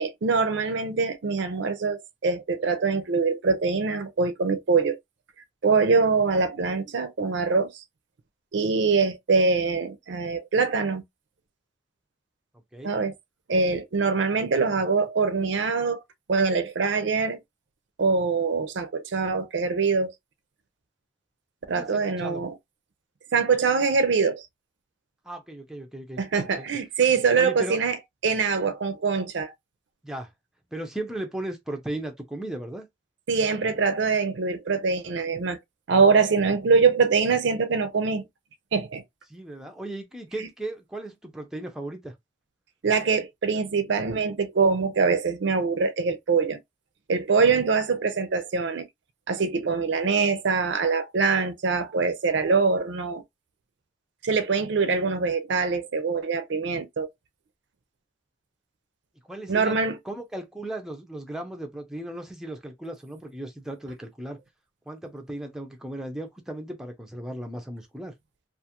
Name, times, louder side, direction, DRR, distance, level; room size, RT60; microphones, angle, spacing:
voice 1, 0.0-5.0 5.6-7.7 8.5-11.0 12.8-13.1 13.5-16.0 16.3-17.4 18.0-20.1 21.7-22.5 23.3-24.4 26.2-28.0 28.2-29.5 33.3-35.6 35.9-38.3 38.7-39.0 42.8-46.6 47.1-48.9 49.3-53.2 54.2-57.1 59.5-60.0, right 4 dB, 70° right, 0.5 m, -23 dB
voice 2, 12.7-13.0 21.7-22.4 25.2-26.7 27.4-27.8 30.0-30.3 30.7-32.9 39.3-42.1 47.5-47.6 59.3-59.8 60.0-64.4 64.9-68.1, right 1 dB, 5° right, 0.4 m, -36 dB
2.4 x 2.3 x 2.9 m
head